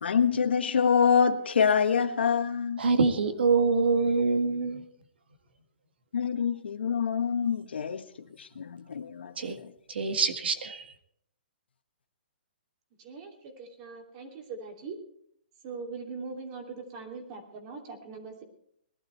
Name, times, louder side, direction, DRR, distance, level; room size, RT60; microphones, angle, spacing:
voice 1, 0.0-2.8 6.1-8.0 8.6-9.3, left 6 dB, 80° left, 1.3 m, -25 dB
voice 2, 2.8-4.8 9.4-9.6 9.9-10.8, right 4 dB, 80° right, 1.9 m, -25 dB
voice 3, 13.0-15.0 15.6-18.4, right 4 dB, 35° right, 3.0 m, -41 dB
19.5 x 12.0 x 4.5 m
hypercardioid pair, 155°, 6 cm